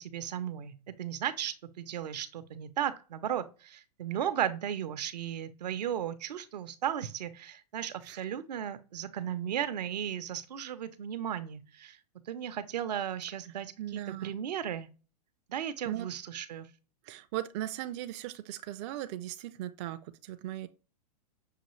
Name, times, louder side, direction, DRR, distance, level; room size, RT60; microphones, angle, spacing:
voice 1, 0.0-12.0 12.3-14.9 15.5-16.7, right 10 dB, 80° right, 0.7 m, -35 dB
voice 2, 13.8-14.3 15.9-16.1 17.0-20.7, right 13 dB, 45° right, 0.4 m, -38 dB
6.5 x 2.3 x 3.1 m
hypercardioid pair, 125°, 21 cm